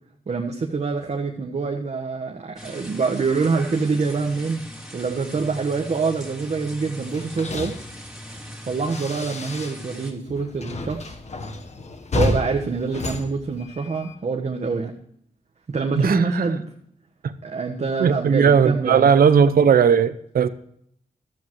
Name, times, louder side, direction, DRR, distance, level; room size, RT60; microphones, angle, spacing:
voice 1, 0.3-4.6 4.9-7.7 8.7-11.2 12.1-14.9 15.7-16.6 17.4-19.1, right 4 dB, 50° right, 1.3 m, -25 dB
sound 1, 2.6-10.1, equal, 5° right, 2.9 m, -40 dB
sound 2, 7.0-10.0 10.2-14.1, left 2 dB, 50° left, 1.3 m, -31 dB
voice 2, 15.9-16.4 17.2-17.3 18.0-20.5, right 7 dB, 85° right, 0.8 m, -17 dB
15.0 x 13.0 x 3.1 m
cardioid pair, 80°, 15 cm